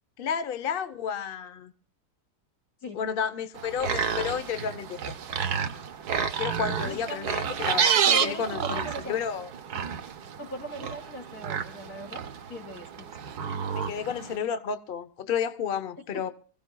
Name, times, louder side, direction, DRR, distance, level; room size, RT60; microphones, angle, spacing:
voice 1, 0.2-1.7 2.9-5.0 6.4-9.5 13.7-16.3, left 7 dB, 50° left, 0.7 m, -31 dB
sound 1, 3.5-14.4, right 7 dB, 75° right, 1.4 m, -30 dB
voice 2, 6.8-7.5 8.0-8.4 8.7-9.2 10.4-12.2 12.5-13.1, right 1 dB, 65° left, 3.2 m, -39 dB
25.5 x 15.5 x 2.2 m
omnidirectional pair, 1.8 m